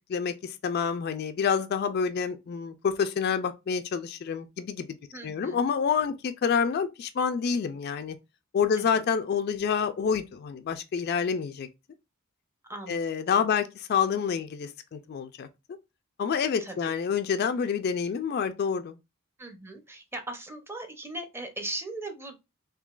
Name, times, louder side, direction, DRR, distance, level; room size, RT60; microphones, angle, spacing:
voice 1, 0.1-4.9 5.2-8.2 8.5-11.7 12.9-15.5 16.2-19.0, left 6 dB, 50° left, 0.3 m, -28 dB
voice 2, 5.1-5.7 8.8-9.0 12.7-13.6 16.6-17.0 19.4-22.4, right 2 dB, 10° right, 0.6 m, -39 dB
3.7 x 2.7 x 2.3 m
head